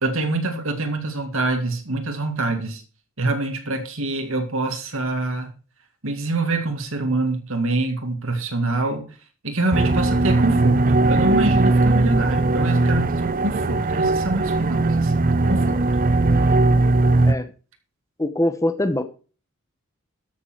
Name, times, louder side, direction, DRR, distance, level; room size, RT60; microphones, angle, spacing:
voice 1, 0.0-2.8 3.2-5.5 6.0-9.0 9.4-10.8 11.0-15.8, right 2 dB, 65° right, 2.3 m, -25 dB
sound 1, 9.7-17.3, right 2 dB, 40° right, 0.7 m, -19 dB
voice 2, 18.2-19.0, left 1 dB, 15° left, 1.0 m, -23 dB
13.0 x 6.9 x 4.5 m
head